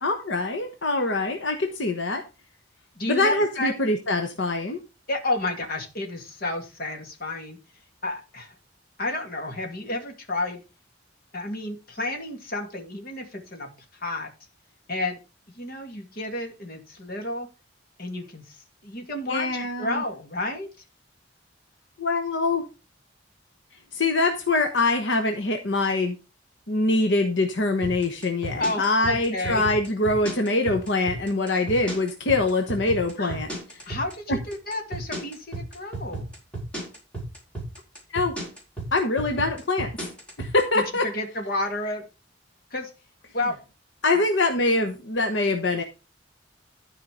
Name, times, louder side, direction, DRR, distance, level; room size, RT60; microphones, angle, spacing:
voice 1, 0.0-2.2 3.1-4.8 19.3-20.0 22.0-22.6 23.9-26.2 26.7-33.5 34.3-34.4 38.1-38.3 38.9-39.9 40.4-41.1 44.0-45.8, left 2 dB, 80° left, 5 dB, 1.2 m, -24 dB
voice 2, 3.0-3.9 5.1-7.6 8.0-8.5 9.0-10.6 11.3-13.7 14.0-14.3 14.9-15.2 15.5-17.5 18.0-18.6 18.8-20.7 28.6-29.6 33.2-33.4 33.9-36.3 40.7-42.0 42.7-42.9 43.3-43.6 44.1-44.2, left 2 dB, 50° left, 4 dB, 2.3 m, -31 dB
sound 1, 27.8-40.6, right 2 dB, 5° left, 4.3 m, -33 dB
12.5 x 4.9 x 5.1 m, 0.29 s
head